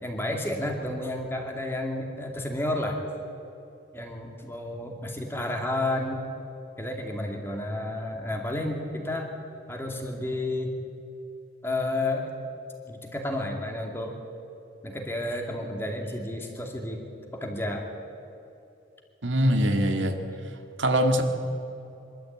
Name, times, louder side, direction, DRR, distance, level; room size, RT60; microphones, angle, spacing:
voice 1, 0.0-3.0 3.9-6.2 6.8-9.3 9.7-10.8 11.6-12.3 12.9-14.2 14.8-17.0 17.3-17.9, left 1 dB, 10° left, 2 dB, 2.4 m, -31 dB
voice 2, 19.2-20.2 20.8-21.2, equal, 80° right, 5 dB, 1.9 m, -22 dB
23.5 x 13.0 x 8.6 m, 2.8 s
head